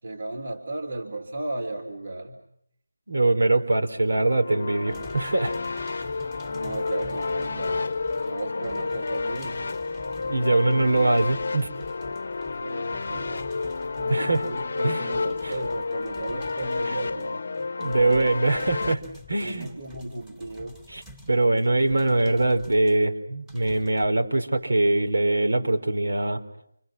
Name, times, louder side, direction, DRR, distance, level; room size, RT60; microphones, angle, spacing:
voice 1, 0.0-2.4 5.9-6.2 6.6-7.9 8.2-9.8 12.6-13.6 13.9-17.4 19.4-20.8, right 2 dB, 45° right, 0 dB, 3.9 m, -35 dB
voice 2, 3.1-5.9 10.3-11.7 14.1-14.4 14.8-15.0 15.4-15.5 17.8-19.7 20.9-21.0 21.3-26.4, right 2 dB, 70° right, 5 dB, 4.5 m, -23 dB
sound 1, 4.2-18.9, left 4 dB, 45° left, 0.9 m, -30 dB
sound 2, 4.9-23.0 23.5-24.1, equal, 5° right, 3.1 m, -48 dB
29.0 x 26.0 x 6.3 m, 0.72 s
figure-of-eight pair, 165°, 0 cm